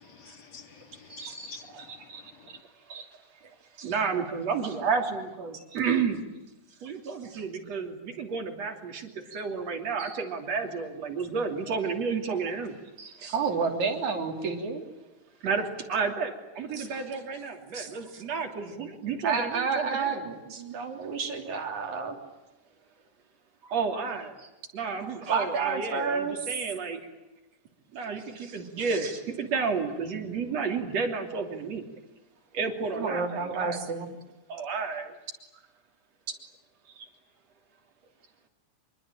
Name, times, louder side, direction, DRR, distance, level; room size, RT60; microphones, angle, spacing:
voice 1, 0.0-2.1 2.4-2.5, left 5 dB, 65° left, 3.5 m, -48 dB
voice 2, 1.1-2.6 2.9-3.1 3.8-6.2 6.8-13.4 15.4-20.2 23.6-27.0 27.9-31.8 32.5-33.8 34.5-35.1 37.0-37.1, right 5 dB, 60° right, 4.1 m, -32 dB
voice 3, 13.3-14.9 16.7-16.9 17.7-18.2 19.2-22.2 25.3-26.4 33.0-34.1, right 5 dB, 80° right, 4.6 m, -30 dB
25.5 x 24.0 x 8.9 m
omnidirectional pair, 3.3 m